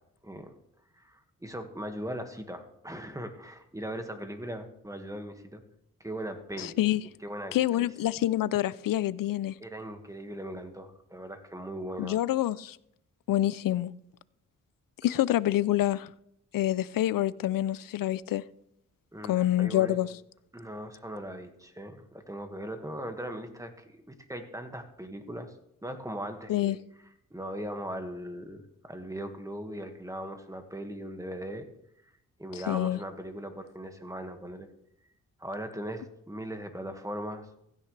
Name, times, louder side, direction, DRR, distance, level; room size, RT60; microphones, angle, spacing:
voice 1, 0.2-0.6 0.9-5.6 6.0-6.8 7.2-7.9 9.6-12.2 19.1-20.0 20.5-25.5 25.8-26.8 27.3-31.7 32.4-34.7 35.4-37.5, right 1 dB, 10° right, 1.8 m, -39 dB
voice 2, 6.6-7.0 7.5-9.6 12.0-12.8 13.3-13.9 15.0-16.1 16.5-18.4 19.2-20.1 26.5-26.8 32.7-33.0, left 13 dB, 80° left, 0.5 m, -27 dB
16.0 x 14.0 x 3.3 m
cardioid pair, 80°, 33 cm